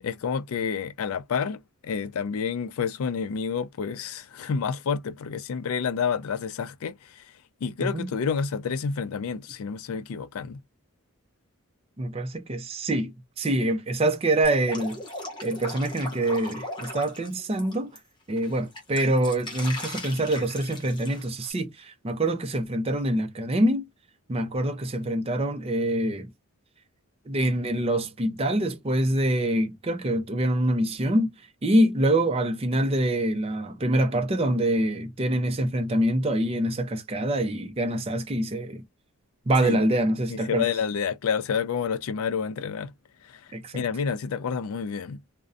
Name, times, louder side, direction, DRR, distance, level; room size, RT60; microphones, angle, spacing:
voice 1, 0.0-7.3 7.6-10.6 39.6-39.8 40.3-42.9 43.2-45.2, left 6 dB, 70° left, 0.4 m, -29 dB
voice 2, 7.8-8.1 12.0-15.0 15.4-17.9 18.3-23.9 24.3-26.3 27.3-31.3 31.6-38.8 39.5-40.7 43.5-43.8, right 1 dB, 25° right, 0.4 m, -25 dB
Drip, 14.4-18.0 18.4-21.5, left 2 dB, 20° left, 0.7 m, -38 dB
2.5 x 2.1 x 2.3 m
head